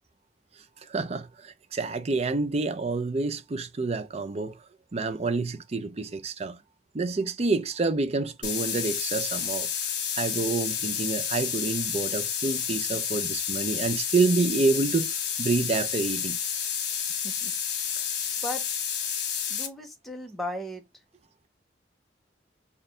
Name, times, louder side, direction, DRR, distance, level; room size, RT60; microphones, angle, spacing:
voice 1, 0.8-4.6 4.9-6.6 6.9-9.7 10.2-15.1 15.4-16.4, right 3 dB, 35° right, 0.5 m, -28 dB
sound 1, 8.4-19.7, left 8 dB, 65° left, 1.3 m, -30 dB
voice 2, 19.5-20.8, left 1 dB, ahead, 0.9 m, -36 dB
4.2 x 2.5 x 3.2 m
head